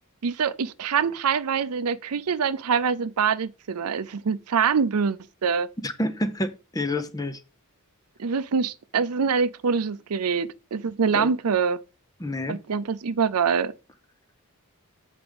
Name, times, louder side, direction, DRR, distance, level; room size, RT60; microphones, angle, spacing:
voice 1, 0.2-5.7 8.2-11.8 12.5-13.7, right 6 dB, 85° right, 0.5 m, -25 dB
voice 2, 5.8-7.4 11.1-11.3 12.2-12.6, left 1 dB, 15° left, 0.8 m, -28 dB
7.8 x 5.0 x 5.2 m
head